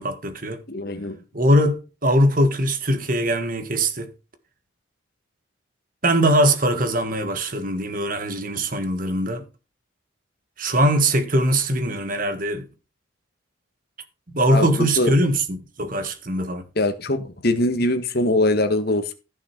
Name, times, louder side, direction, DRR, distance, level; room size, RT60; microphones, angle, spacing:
voice 1, 0.0-0.6 1.3-4.1 6.0-9.4 10.6-12.7 14.3-16.7, right 1 dB, 40° right, 1.5 m, -21 dB
voice 2, 0.7-1.2 14.5-15.1 16.7-19.1, left 1 dB, 50° left, 1.7 m, -22 dB
14.5 x 6.3 x 4.5 m
head